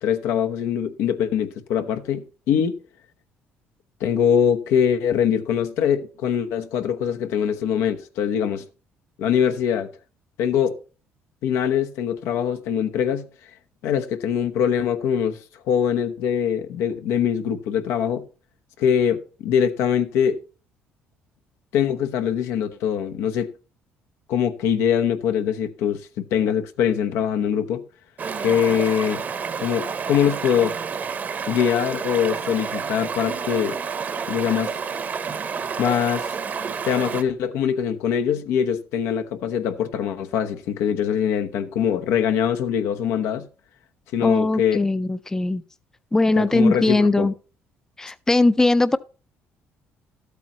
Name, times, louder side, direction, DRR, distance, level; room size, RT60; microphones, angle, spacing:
voice 1, 0.0-2.8 4.0-8.6 9.2-9.9 10.4-10.8 11.4-13.3 13.8-15.4 15.7-18.2 18.8-20.4 21.7-23.5 24.3-27.8 28.4-29.2 29.6-30.8 31.5-33.8 34.3-34.7 35.8-36.3 36.9-43.5 44.1-44.8 46.4-47.3, left 8 dB, 85° left, 1.0 m, -23 dB
Stream, 28.2-37.2, right 6 dB, 40° right, 0.9 m, -29 dB
voice 2, 44.2-45.6 46.1-47.3 48.0-49.0, left 2 dB, 10° left, 0.5 m, -20 dB
13.0 x 8.3 x 3.0 m
cardioid pair, 110°, 4 cm